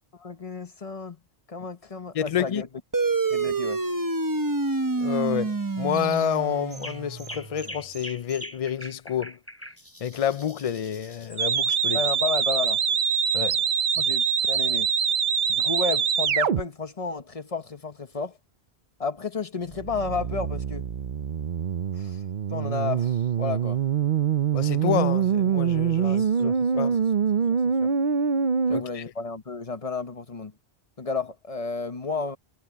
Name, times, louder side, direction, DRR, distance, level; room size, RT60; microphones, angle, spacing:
voice 1, 0.2-1.2 1.5-2.7 3.3-3.8 11.9-12.8 14.0-14.9 15.5-18.4 19.0-20.9 21.9-22.2 22.5-23.8 26.0-26.9 27.5-27.9 28.7-30.5 31.0-32.4, left 4 dB, 35° left, 1.2 m, -32 dB
voice 2, 2.1-2.6 5.0-9.4 10.0-12.0 13.3-13.6 24.5-27.0 28.7-29.0, left 9 dB, 60° left, 0.3 m, -29 dB
sound 1, 2.9-7.8, right 3 dB, 20° right, 0.8 m, -28 dB
sound 2, 5.9-6.3 6.7-11.4, equal, 10° left, 3.7 m, -43 dB
sound 3, 11.4-16.6 19.7-28.8, right 7 dB, 50° right, 0.8 m, -24 dB
omnidirectional pair, 1.1 m